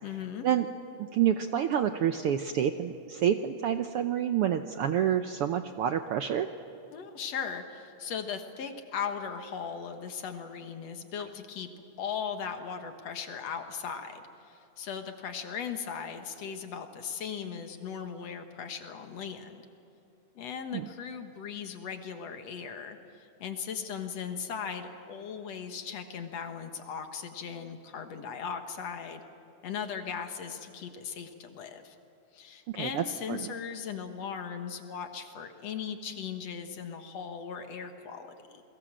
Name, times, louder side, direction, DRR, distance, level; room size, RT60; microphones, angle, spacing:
voice 1, 0.0-0.5 6.9-11.7 12.0-19.6 20.4-29.2 29.6-32.0 32.3-38.6, left 7 dB, 60° left, 6 dB, 2.5 m, -38 dB
voice 2, 1.0-6.5 20.7-20.9 32.7-33.0 33.3-33.5, right 9 dB, 75° right, 8 dB, 1.4 m, -28 dB
29.0 x 22.0 x 7.5 m, 2.9 s
omnidirectional pair, 3.3 m